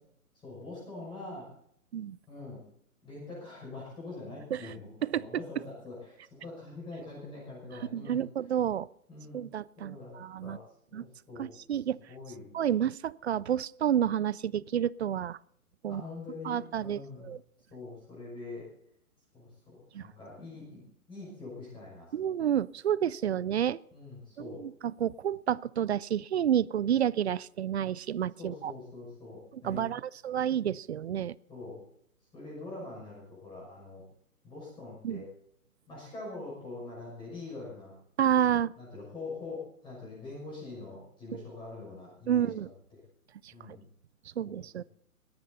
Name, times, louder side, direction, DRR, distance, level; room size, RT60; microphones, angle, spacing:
voice 1, 0.4-1.5 2.3-2.6 3.0-4.9 5.1-8.2 9.1-9.4 9.8-10.2 10.4-10.6 10.9-11.8 12.1-12.5 15.9-17.3 17.7-18.6 19.3-20.8 21.1-22.3 23.9-24.6 28.4-29.9 31.5-31.8 32.3-34.0 34.4-35.3 35.9-37.9 38.8-43.0 43.5-43.8 44.4-44.9, left 3 dB, 10° left, -5 dB, 6.1 m, -44 dB
voice 2, 7.9-8.9 9.3-10.6 10.9-11.0 11.4-12.0 12.5-15.4 15.8-16.0 16.4-17.4 19.9-20.1 22.1-23.8 24.4-28.7 29.6-31.4 35.0-35.2 38.2-38.7 41.3-41.4 42.3-42.7 44.4-44.8, right 10 dB, 50° right, 23 dB, 0.4 m, -30 dB
18.5 x 13.5 x 4.1 m, 0.68 s
hypercardioid pair, 150°, 44 cm